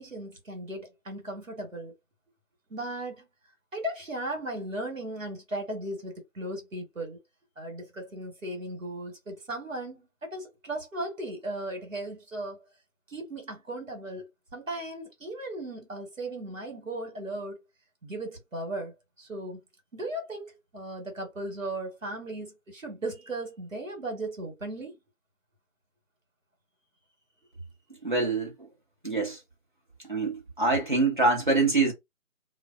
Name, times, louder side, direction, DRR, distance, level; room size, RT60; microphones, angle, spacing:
voice 1, 0.0-1.9 2.7-3.2 3.7-7.2 7.6-12.6 13.1-17.6 18.0-19.6 19.9-25.0, right 1 dB, 70° right, 1.3 m, -37 dB
voice 2, 28.0-28.5 29.0-29.4 30.1-31.9, right 3 dB, 35° right, 0.9 m, -25 dB
2.4 x 2.1 x 2.4 m
figure-of-eight pair, 165°, 41 cm